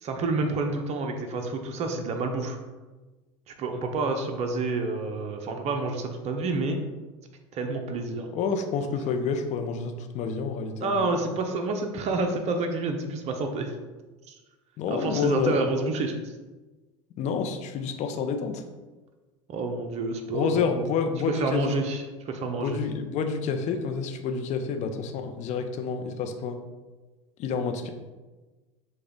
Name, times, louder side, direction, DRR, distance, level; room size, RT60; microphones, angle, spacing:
voice 1, 0.0-2.6 3.5-6.8 7.5-8.3 10.8-13.7 14.3-14.4 14.9-16.3 19.5-20.7 21.3-22.8, right 3 dB, 40° right, 4 dB, 0.7 m, -29 dB
voice 2, 8.3-11.1 14.8-15.6 17.2-18.6 20.3-21.8 22.5-26.6 27.4-27.9, left 5 dB, 45° left, 6 dB, 0.6 m, -29 dB
6.3 x 2.3 x 3.5 m, 1.2 s
hypercardioid pair, 85°, 16 cm